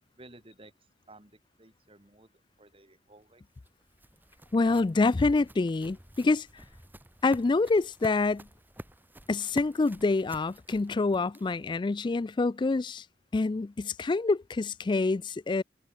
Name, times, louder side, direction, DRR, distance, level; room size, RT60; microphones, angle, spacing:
voice 1, 0.2-0.7 1.1-2.3 2.6-3.4, right 2 dB, 30° right, 3.4 m, -54 dB
sound 1, 3.2-11.7, right 1 dB, 10° right, 2.4 m, -50 dB
voice 2, 4.5-6.5 7.2-8.5 9.3-13.0 13.3-15.6, left 3 dB, 25° left, 0.3 m, -26 dB
head